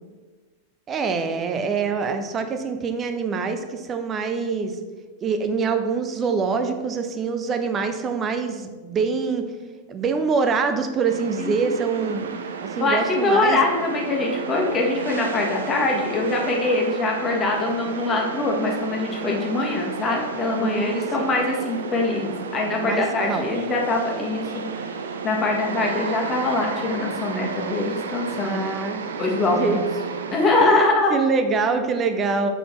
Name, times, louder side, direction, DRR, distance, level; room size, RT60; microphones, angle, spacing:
voice 1, 0.9-4.8 5.2-9.5 9.9-12.3 12.6-13.6 20.6-21.0 22.8-23.5 25.7-25.8 28.4-29.1 29.5-29.8 30.6-32.5, right 5 dB, 25° right, 7 dB, 0.6 m, -25 dB
sound 1, 11.1-30.6, right 5 dB, 65° right, 0.5 m, -32 dB
voice 2, 11.4-11.8 12.8-24.6 25.2-28.6 29.2-29.8 30.3-31.1, left 2 dB, 25° left, -1 dB, 1.5 m, -23 dB
6.8 x 4.3 x 4.2 m, 1.3 s
figure-of-eight pair, 90°, 0 cm